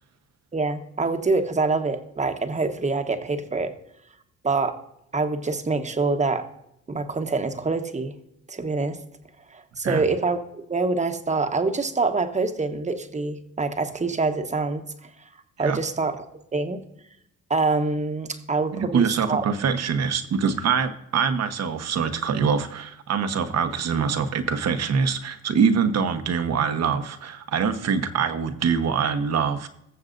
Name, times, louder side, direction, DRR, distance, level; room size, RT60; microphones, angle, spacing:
voice 1, 0.5-3.7 4.4-4.8 5.1-6.5 6.9-8.1 8.5-9.0 9.5-14.8 15.6-16.2 16.5-16.8 17.5-19.4, right 3 dB, 25° right, 7 dB, 1.1 m, -25 dB
voice 2, 18.7-29.7, right 6 dB, 60° right, 9 dB, 1.1 m, -24 dB
20.0 x 7.1 x 2.6 m, 0.80 s
cardioid pair, 90°, 30 cm